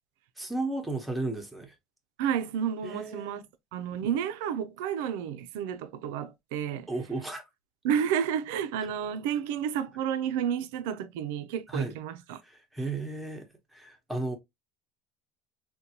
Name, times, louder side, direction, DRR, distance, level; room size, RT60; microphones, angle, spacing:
voice 1, 0.4-1.7 2.8-3.4 6.9-7.4 11.7-11.9 12.4-13.5 13.7-14.4, right 3 dB, 5° right, 0.8 m, -34 dB
voice 2, 2.2-3.4 3.7-6.9 7.8-12.4, right 8 dB, 85° right, 0.4 m, -31 dB
3.8 x 2.2 x 2.7 m
cardioid pair, 140°, 0 cm